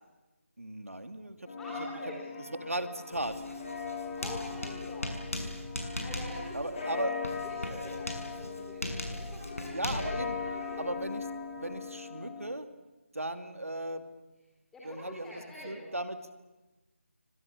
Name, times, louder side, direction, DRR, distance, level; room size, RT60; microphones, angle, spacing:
voice 1, 0.6-1.5 2.6-3.3 6.5-7.1 9.7-10.4 10.8-11.3 11.6-12.7 13.1-14.0 14.8-16.2, right 1 dB, 80° right, 9 dB, 2.6 m, -36 dB
sound 1, 1.5-12.5, left 5 dB, 35° left, 6.6 m, -40 dB
voice 2, 1.6-2.2 4.2-5.0 6.0-6.8 7.4-10.1 10.4-10.9 14.7-15.9, left 1 dB, 5° left, -7 dB, 4.1 m, -45 dB
Writing, 3.1-11.8, left 1 dB, 90° left, 6.7 m, -40 dB
27.0 x 24.5 x 6.9 m, 1.1 s
figure-of-eight pair, 160°, 7 cm